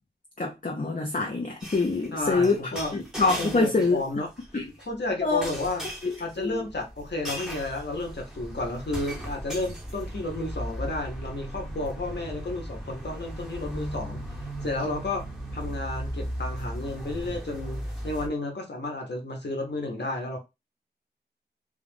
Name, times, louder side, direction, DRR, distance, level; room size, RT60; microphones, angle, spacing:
voice 1, 0.4-2.6 2.9-4.0 4.5-4.7 5.2-5.5 6.0-6.6, left 3 dB, 50° left, 0.8 m, -25 dB
sound 1, 1.6-4.1 4.4-4.8 5.4-18.3, right 1 dB, 5° right, 1.3 m, -37 dB
voice 2, 2.1-2.9 3.4-4.3 4.8-5.9 6.2-14.2 14.6-15.2 15.5-20.4, left 2 dB, 75° left, 1.0 m, -32 dB
3.6 x 2.4 x 3.5 m
wide cardioid pair, 50°, 18 cm